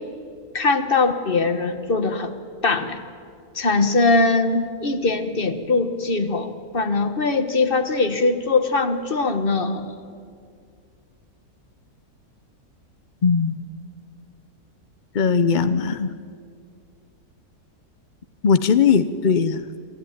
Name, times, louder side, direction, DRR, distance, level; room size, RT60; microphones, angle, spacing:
voice 1, 0.5-2.3 2.6-3.0 3.5-9.9, left 3 dB, 35° left, 9 dB, 1.4 m, -21 dB
voice 2, 13.2-13.6 15.1-16.1 18.4-19.6, left 6 dB, 55° left, 12 dB, 0.5 m, -19 dB
26.5 x 15.5 x 9.4 m, 2.2 s
omnidirectional pair, 1.7 m